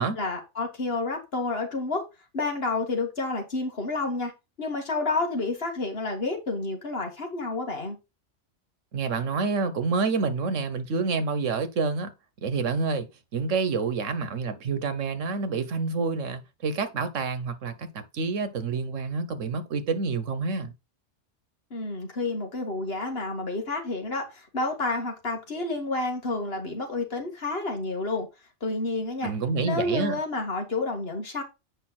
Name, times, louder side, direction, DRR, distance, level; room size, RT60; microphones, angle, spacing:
voice 1, 0.2-2.0 2.3-4.3 4.6-8.0 21.7-28.3 28.6-29.3 29.6-31.4, left 3 dB, 55° left, 2.1 m, -30 dB
voice 2, 8.9-12.1 12.4-20.7 29.2-30.1, right 4 dB, 90° right, 1.4 m, -28 dB
8.2 x 5.4 x 4.1 m
omnidirectional pair, 1.3 m